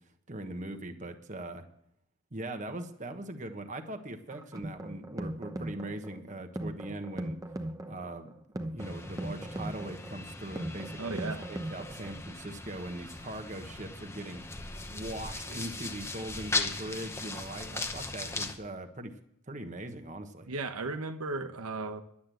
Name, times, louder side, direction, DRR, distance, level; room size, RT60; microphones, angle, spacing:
voice 1, 0.3-1.7 2.3-7.4 7.8-11.2 11.5-19.1 19.5-20.5, right 1 dB, 35° right, 1.2 m, -41 dB
sound 1, 4.3-12.3, right 1 dB, 15° right, 0.9 m, -39 dB
sound 2, 8.8-18.5, left 2 dB, 10° left, 0.9 m, -38 dB
voice 2, 11.0-11.5 20.5-22.0, right 3 dB, 90° right, 1.0 m, -35 dB
11.5 x 8.6 x 7.7 m
head